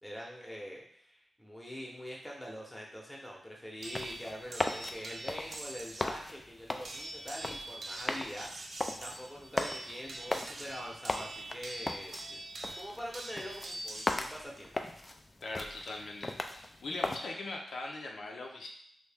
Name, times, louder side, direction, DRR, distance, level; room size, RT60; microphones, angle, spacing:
voice 1, 0.0-8.5 9.0-12.4 12.7-14.7, equal, 5° left, -3 dB, 0.9 m, -44 dB
sound 1, 3.8-17.2, left 2 dB, 30° left, 0.3 m, -39 dB
sound 2, 3.8-6.2 6.8-14.4 15.5-15.9, right 2 dB, 60° right, 0.4 m, -44 dB
voice 2, 15.4-18.7, left 2 dB, 85° left, 0 dB, 0.5 m, -41 dB
3.1 x 2.7 x 3.4 m, 0.65 s
wide cardioid pair, 95°, 0 cm